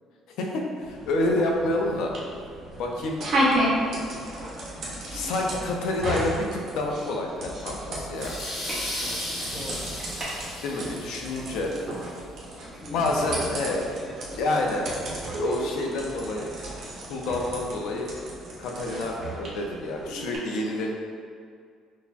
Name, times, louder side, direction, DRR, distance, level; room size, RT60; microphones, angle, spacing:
voice 1, 0.4-2.1 2.8-3.3 5.1-8.4 10.6-11.7 12.9-13.8 14.4-14.9 15.4-16.5 17.1-18.1 18.6-20.9, left 2 dB, 75° left, 1 dB, 0.5 m, -28 dB
sound 1, 0.8-20.4, right 1 dB, 50° right, 0.8 m, -33 dB
sound 2, 3.9-12.7, right 1 dB, 15° right, 0.9 m, -45 dB
sound 3, 8.1-11.6, left 1 dB, 45° left, 1.0 m, -35 dB
voice 2, 9.5-10.2 11.1-11.9 12.7-15.0, left 1 dB, 10° left, -1 dB, 0.4 m, -44 dB
5.5 x 2.0 x 2.5 m, 2.2 s
cardioid pair, 145°, 0 cm